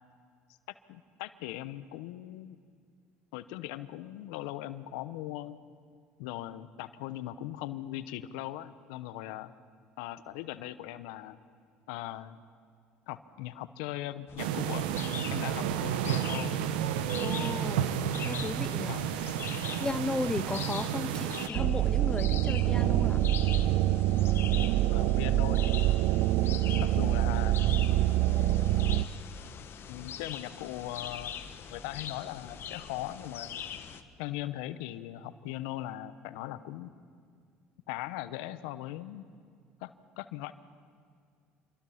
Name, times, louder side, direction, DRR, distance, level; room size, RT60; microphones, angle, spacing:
voice 1, 0.9-2.6 3.3-5.6 6.2-9.5 10.0-11.4 11.9-12.4 13.1-14.9 15.3-16.6 18.8-19.1 24.9-26.0 26.8-27.6 29.9-31.3 31.7-33.6 34.2-36.9 37.9-39.3 39.8-40.5, left 14 dB, 80° left, 0.9 m, -39 dB
sound 1, 14.3-34.0, left 8 dB, 50° left, 1.5 m, -43 dB
sound 2, 14.4-21.5, right 9 dB, 85° right, 1.1 m, -31 dB
voice 2, 17.2-17.9 18.2-19.0 19.8-23.3, left 3 dB, 15° left, 0.6 m, -35 dB
sound 3, 21.5-29.1, right 15 dB, 70° right, 0.6 m, -26 dB
27.0 x 22.5 x 5.8 m
hypercardioid pair, 75°, 5 cm